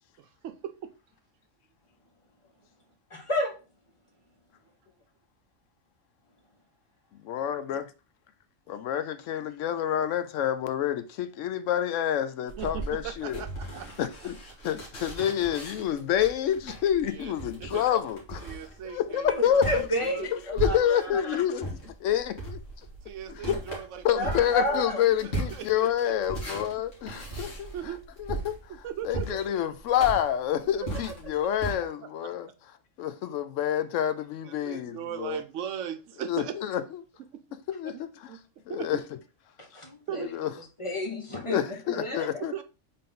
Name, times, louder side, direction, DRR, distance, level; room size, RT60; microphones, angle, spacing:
voice 1, 0.2-0.9 12.6-14.1 17.0-17.3 17.6-17.8 18.4-20.3 20.6-20.8 21.1-21.4 23.0-24.4 24.7-24.8 25.2-25.9 27.7-28.0 28.7-29.4 30.8-30.9 31.4-31.5 32.2-32.3 34.4-36.6 37.3-37.4 37.8-38.0 38.3-38.4 38.7-39.0 40.1-40.3 42.4-42.6, right 9 dB, 80° right, 1.0 m, -38 dB
voice 2, 3.1-3.5 19.3-21.4 23.3-23.6 24.1-25.0 39.6-40.2 40.8-42.4, left 1 dB, 30° left, 0.9 m, -31 dB
voice 3, 7.2-7.8 8.7-13.4 14.0-14.4 14.6-18.4 18.8-19.8 20.3-21.7 22.0-22.6 23.4-23.6 24.0-27.7 28.2-28.6 29.0-32.5 33.0-35.4 36.3-36.8 37.7-37.9 38.7-39.0 40.2-40.5 41.4-42.5, left 10 dB, 80° left, 0.9 m, -28 dB
sound 1, 12.5-21.2 21.6-31.7, right 2 dB, 60° left, 2.1 m, -37 dB
3.8 x 3.7 x 3.8 m
omnidirectional pair, 1.3 m